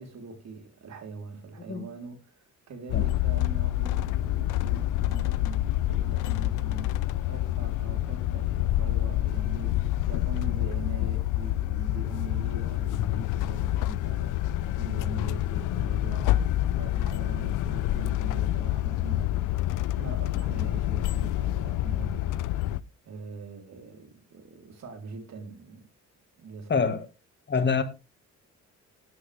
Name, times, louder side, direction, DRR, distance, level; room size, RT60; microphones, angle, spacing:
voice 1, 0.0-16.4 16.7-19.4 20.0-22.8 23.0-25.8 26.4-26.9, right 4 dB, 60° right, 3.7 m, -42 dB
sound 1, 2.9-22.8, left 14 dB, 90° left, 0.6 m, -27 dB
voice 2, 26.7-27.0 27.5-27.8, left 5 dB, 35° left, 1.7 m, -25 dB
12.5 x 10.0 x 3.4 m
cardioid pair, 90°, 30 cm